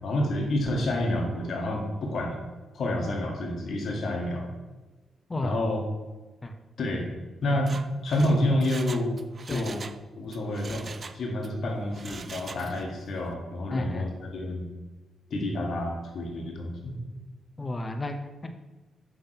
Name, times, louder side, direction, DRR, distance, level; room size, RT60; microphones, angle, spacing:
voice 1, 0.0-2.4 2.7-4.5 5.4-5.8 6.8-7.0 7.4-9.2 9.5-9.8 10.2-14.7 15.3-17.0, left 1 dB, 65° left, 0 dB, 1.8 m, -29 dB
Mechanisms, 7.5-10.0 10.3-11.5 11.9-13.0 13.3-13.4, right 4 dB, 50° right, 0.4 m, -42 dB
voice 2, 13.7-14.0 17.6-18.5, left 1 dB, 30° left, 6 dB, 0.9 m, -32 dB
6.8 x 4.0 x 5.9 m, 1.2 s
supercardioid pair, 45°, 0 cm